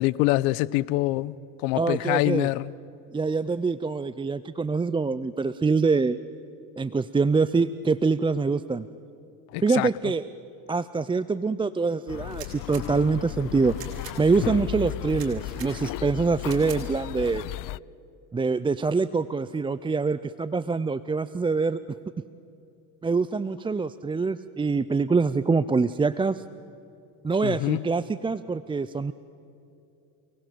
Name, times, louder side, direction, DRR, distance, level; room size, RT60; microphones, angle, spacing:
voice 1, 0.0-2.7 9.5-9.9 27.4-27.8, left 19 dB, 75° left, 0.9 m, -25 dB
voice 2, 1.7-2.5 3.1-6.2 6.8-8.9 9.6-10.3 10.7-13.8 14.2-17.4 18.3-21.8 23.0-26.4 27.2-29.1, right 4 dB, 10° right, 0.5 m, -25 dB
sound 1, 12.1-17.8, left 18 dB, 50° left, 0.5 m, -35 dB
sound 2, 12.3-12.8 13.7-14.2 15.1-15.7 16.5-16.8, right 10 dB, 50° right, 6.0 m, -43 dB
29.0 x 19.0 x 7.6 m
supercardioid pair, 90°, 45 cm